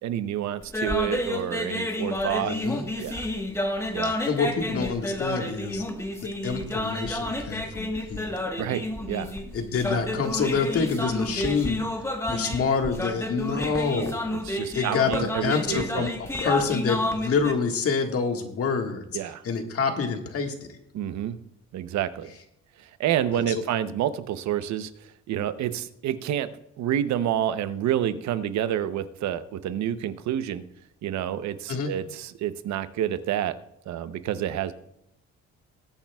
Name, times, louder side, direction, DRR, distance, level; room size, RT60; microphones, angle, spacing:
voice 1, 0.0-2.6 3.0-3.3 3.9-4.2 8.6-9.3 14.0-16.1 19.1-19.4 20.9-21.4 21.7-22.3 23.0-24.9 25.3-26.5 26.8-30.6 31.0-33.6 33.9-34.7, right 11 dB, 70° right, 13 dB, 0.8 m, -28 dB
sound 1, 0.6-17.5, left 1 dB, 10° left, 1.3 m, -30 dB
voice 2, 2.4-2.8 4.0-5.8 6.2-8.5 9.5-11.9 12.3-14.3 14.7-19.0 19.4-20.8 23.3-23.6 31.7-31.9, left 5 dB, 50° left, 4 dB, 1.7 m, -27 dB
20.5 x 8.8 x 2.3 m, 0.81 s
cardioid pair, 105°, 29 cm